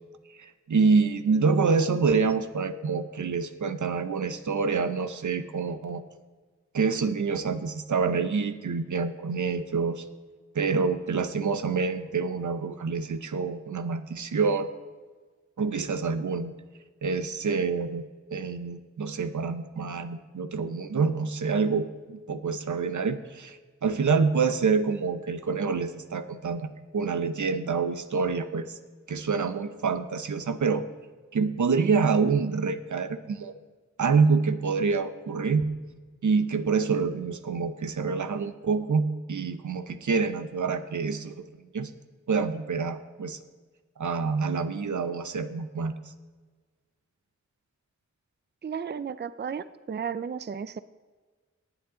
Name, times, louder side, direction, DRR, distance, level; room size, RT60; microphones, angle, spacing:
voice 1, 0.4-6.0 6.7-10.0 10.5-14.7 15.6-16.5 17.0-18.0 18.3-28.8 29.1-30.8 31.3-33.5 34.0-35.7 36.2-41.9 42.3-43.4 44.0-45.9, right 5 dB, 85° right, 10 dB, 0.8 m, -27 dB
voice 2, 48.6-50.8, right 7 dB, 40° right, 14 dB, 0.4 m, -34 dB
19.0 x 8.1 x 3.8 m, 1.4 s
wide cardioid pair, 60°, 29 cm